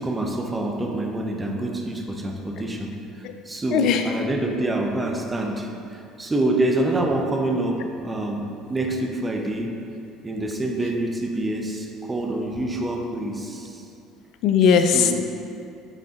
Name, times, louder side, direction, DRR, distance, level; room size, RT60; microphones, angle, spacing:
voice 1, 0.0-2.9 3.4-9.8 10.2-13.8 14.9-15.1, right 1 dB, 20° right, 1 dB, 0.8 m, -26 dB
voice 2, 3.7-4.1 14.4-15.1, left 7 dB, 65° left, 8 dB, 0.4 m, -18 dB
9.0 x 3.8 x 2.9 m, 2.6 s
hypercardioid pair, 70°, 0 cm